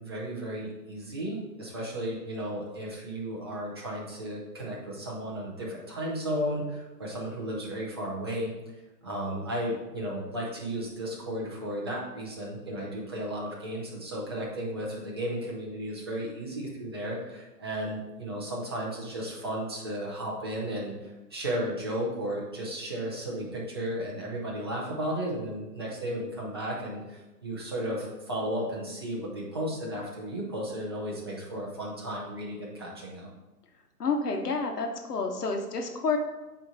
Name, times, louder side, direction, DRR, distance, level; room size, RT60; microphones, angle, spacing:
voice 1, 0.0-8.5 9.0-33.3, equal, 15° right, -4 dB, 0.6 m, -34 dB
voice 2, 34.0-36.2, left 4 dB, 70° left, 3 dB, 1.2 m, -29 dB
8.9 x 3.2 x 4.1 m, 1.1 s
hypercardioid pair, 155°, 49 cm